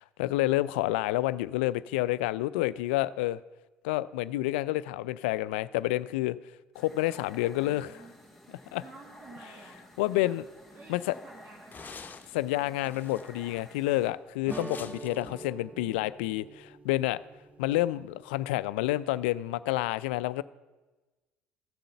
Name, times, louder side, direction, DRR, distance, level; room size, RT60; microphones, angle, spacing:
voice 1, 0.0-3.4 3.8-6.4 6.8-8.0 8.7-8.8 10.0-10.4 10.9-11.0 12.3-17.2 17.6-20.4, left 16 dB, 80° left, 0.4 m, -29 dB
sound 1, 6.7-14.1, left 1 dB, ahead, 3.3 m, -52 dB
voice 2, 7.5-8.1 8.8-9.8 10.1-10.4 10.7-12.1 15.1-15.9, right 4 dB, 40° right, 1.7 m, -52 dB
sound 2, 9.7-9.8 10.0-10.2 10.6-10.7 11.7-12.4 12.7-13.4 14.5-15.5, left 5 dB, 35° left, 1.0 m, -46 dB
sound 3, 14.5-19.3, right 3 dB, 20° right, 0.5 m, -46 dB
14.0 x 7.6 x 6.9 m
hypercardioid pair, 60°, 6 cm